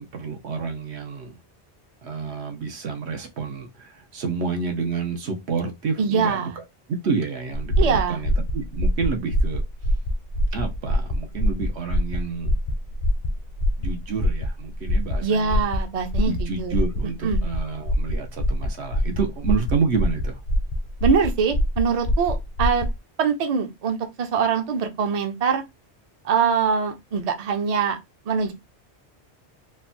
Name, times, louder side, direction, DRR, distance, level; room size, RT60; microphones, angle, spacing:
voice 1, 0.0-1.4 2.0-6.6 6.9-9.6 10.5-12.6 13.8-15.6 16.2-20.4, right 5 dB, 85° right, 1.1 m, -29 dB
voice 2, 6.0-6.6 7.8-8.2 15.2-16.7 17.2-17.4 21.0-22.9 23.2-25.6 26.2-28.0 28.3-28.5, right 6 dB, 45° right, 0.5 m, -23 dB
sound 1, 7.5-23.0, equal, 55° left, 0.6 m, -24 dB
3.2 x 2.1 x 2.5 m
omnidirectional pair, 1.1 m